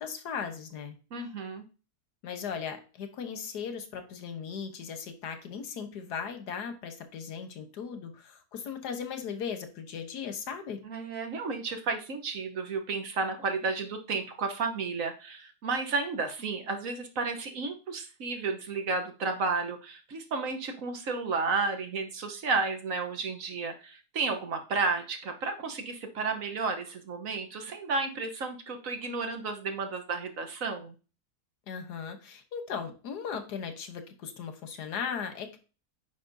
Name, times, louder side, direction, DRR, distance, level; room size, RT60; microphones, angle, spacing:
voice 1, 0.0-1.0 2.2-10.8 31.7-35.6, left 6 dB, 85° left, 7 dB, 1.6 m, -37 dB
voice 2, 1.1-1.6 10.8-30.9, right 4 dB, 60° right, 5 dB, 1.4 m, -32 dB
9.4 x 5.2 x 2.7 m, 0.34 s
omnidirectional pair, 1.7 m